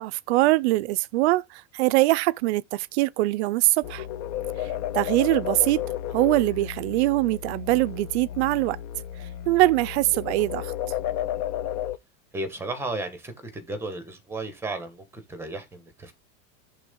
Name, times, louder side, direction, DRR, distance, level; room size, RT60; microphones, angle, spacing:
voice 1, 0.0-4.1 4.6-5.8 6.1-8.8 9.5-10.7, right 19 dB, 55° right, 0.5 m, -23 dB
sound 1, 3.8-12.0, left 11 dB, 35° left, 0.6 m, -32 dB
voice 2, 12.3-16.1, right 2 dB, 5° right, 1.4 m, -34 dB
10.5 x 3.8 x 3.7 m
supercardioid pair, 170°, 42 cm